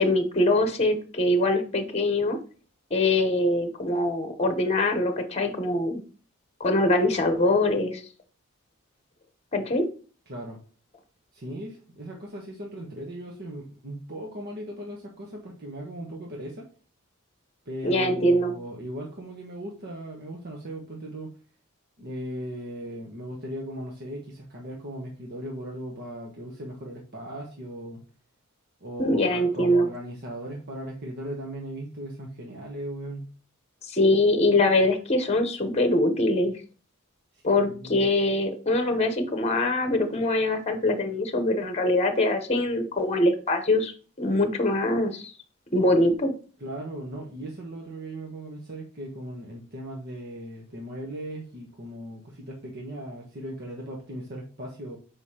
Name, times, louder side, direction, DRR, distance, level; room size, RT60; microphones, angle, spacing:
voice 1, 0.0-2.4 2.9-6.0 6.6-8.0 9.5-9.8 17.8-18.5 29.0-29.9 33.9-36.5 37.4-43.9 44.2-45.3 45.7-46.3, left 1 dB, 30° left, 7 dB, 0.9 m, -23 dB
voice 2, 10.3-10.6 11.3-16.7 17.6-21.3 22.0-28.0 28.8-33.3 37.3-38.0 46.6-55.0, right 1 dB, 50° right, -1 dB, 1.2 m, -38 dB
6.9 x 5.0 x 2.9 m, 0.39 s
head